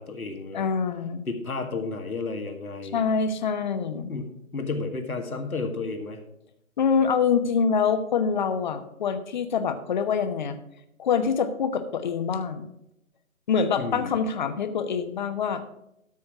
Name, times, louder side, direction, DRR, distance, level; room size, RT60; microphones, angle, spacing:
voice 1, 0.0-0.7 1.3-3.0 4.1-6.2 13.8-14.3, left 3 dB, 90° left, 5 dB, 1.9 m, -32 dB
voice 2, 0.5-1.2 2.9-4.1 6.8-10.6 11.0-12.7 13.5-15.6, left 6 dB, 35° left, 9 dB, 1.0 m, -25 dB
13.0 x 6.1 x 4.8 m, 0.79 s
figure-of-eight pair, 150°, 42 cm